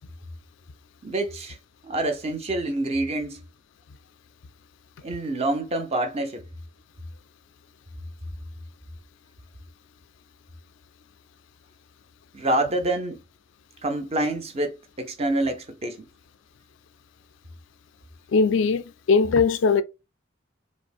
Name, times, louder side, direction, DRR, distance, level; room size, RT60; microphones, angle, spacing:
voice 1, 1.0-1.6 1.8-3.5 5.0-6.4 12.3-13.2 13.8-16.1, right 2 dB, 30° right, 0.7 m, -27 dB
voice 2, 18.3-19.8, left 5 dB, 70° left, 0.3 m, -20 dB
4.9 x 2.1 x 2.4 m
head